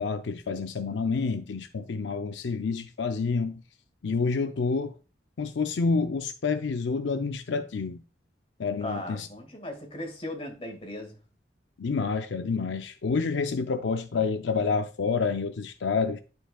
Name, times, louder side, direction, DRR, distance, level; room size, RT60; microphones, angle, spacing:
voice 1, 0.0-3.6 4.0-4.9 5.4-8.0 8.6-9.3 11.8-16.2, left 4 dB, 85° left, 0.5 m, -28 dB
voice 2, 8.8-11.2, left 1 dB, 30° left, 1.8 m, -37 dB
11.5 x 4.5 x 2.3 m
head